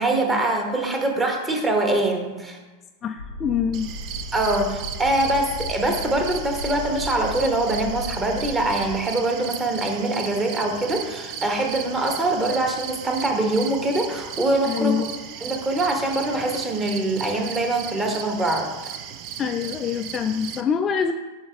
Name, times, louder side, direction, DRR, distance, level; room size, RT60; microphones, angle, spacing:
voice 1, 0.0-2.6 4.3-15.0 15.4-18.9, right 2 dB, 15° right, 2 dB, 1.2 m, -23 dB
voice 2, 3.0-4.0 14.6-15.1 19.4-21.1, left 7 dB, 25° left, 6 dB, 0.3 m, -25 dB
sound 1, 3.2-9.0, left 2 dB, 85° left, 0.7 m, -35 dB
sound 2, 3.7-20.6, right 9 dB, 40° right, 0.5 m, -36 dB
11.0 x 3.7 x 3.4 m, 1.2 s
figure-of-eight pair, 90°, 0 cm